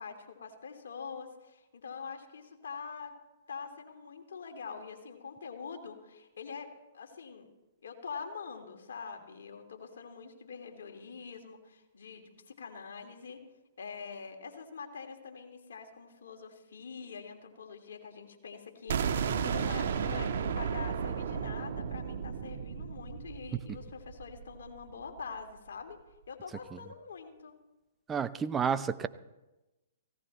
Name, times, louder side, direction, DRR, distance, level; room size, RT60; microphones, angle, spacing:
voice 1, 0.0-3.1 3.5-7.5 7.8-13.4 13.8-26.0 26.3-27.6, left 5 dB, 70° left, 3 dB, 2.9 m, -44 dB
sound 1, 18.9-24.7, right 7 dB, 60° right, 1.5 m, -33 dB
voice 2, 28.1-29.1, right 6 dB, 15° right, 12 dB, 0.7 m, -30 dB
17.5 x 17.0 x 4.3 m, 1.0 s
hypercardioid pair, 120°, 0 cm